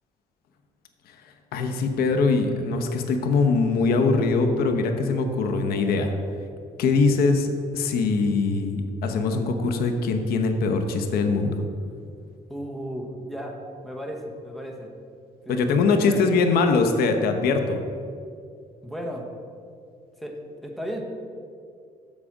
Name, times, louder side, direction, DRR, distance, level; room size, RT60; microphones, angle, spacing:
voice 1, 1.5-6.2 6.8-11.6 15.5-17.8, left 4 dB, 85° left, 6 dB, 0.9 m, -22 dB
voice 2, 12.5-14.9 15.4-16.2 18.8-19.3 20.2-21.0, equal, ahead, 1 dB, 1.0 m, -35 dB
7.5 x 4.9 x 7.2 m, 2.3 s
cardioid pair, 135°, 15 cm